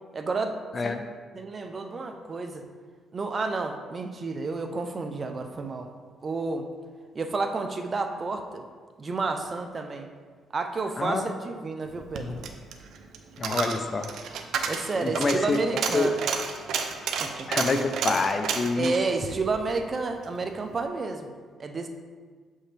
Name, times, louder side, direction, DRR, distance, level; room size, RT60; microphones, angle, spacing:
voice 1, 0.1-0.6 0.8-1.0 1.3-2.6 3.1-5.9 6.2-6.7 7.1-8.6 9.0-10.1 10.5-12.5 14.7-16.1 17.2-17.3 18.7-21.3 21.6-21.9, right 3 dB, 35° right, 5 dB, 0.6 m, -30 dB
voice 2, 11.0-11.3 12.3-12.4 13.4-14.1 14.9-15.6 15.9-16.1 17.5-18.9, left 3 dB, 40° left, 7 dB, 0.5 m, -26 dB
Coin (dropping), 11.9-20.4 20.7-20.8, right 6 dB, 75° right, 0.6 m, -32 dB
7.1 x 5.5 x 3.4 m, 1.5 s
cardioid pair, 90°, 0 cm